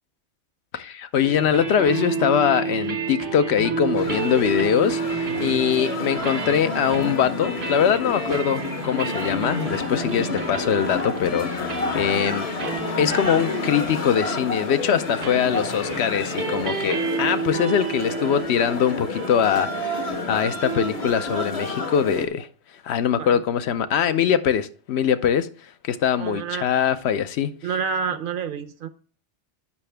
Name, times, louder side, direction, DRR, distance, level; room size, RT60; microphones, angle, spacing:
voice 1, 0.7-12.5 13.0-22.5 22.8-27.5, left 8 dB, 70° left, 0.8 m, -22 dB
sound 1, 1.2-21.1, right 4 dB, 75° right, 1.4 m, -31 dB
Wind instrument woodwind instrument, 3.8-12.1, right 1 dB, 85° left, 4.8 m, -49 dB
sound 2, 4.0-22.3, left 3 dB, 35° left, 0.7 m, -30 dB
voice 2, 26.2-26.7 27.6-28.9, right 6 dB, 55° right, 0.8 m, -28 dB
8.4 x 5.7 x 3.3 m
omnidirectional pair, 1.2 m